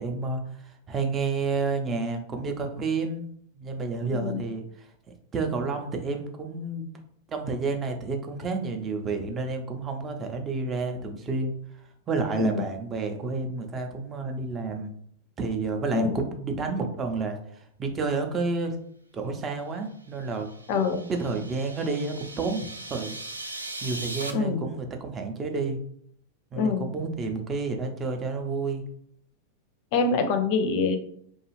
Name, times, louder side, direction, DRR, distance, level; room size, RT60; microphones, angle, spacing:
voice 1, 0.0-3.3 3.6-4.6 5.3-6.9 7.3-11.5 12.1-14.9 15.4-18.8 19.1-20.5 21.1-23.2 23.8-25.8 26.5-28.8, right 4 dB, 25° right, 4 dB, 0.5 m, -30 dB
sound 1, 20.1-24.3, right 2 dB, 85° right, 0.3 m, -39 dB
voice 2, 20.7-21.0 24.3-24.7 26.5-26.8 29.9-31.0, left 4 dB, 45° left, 7 dB, 0.4 m, -25 dB
2.7 x 2.3 x 3.0 m, 0.66 s
figure-of-eight pair, 90°, 0 cm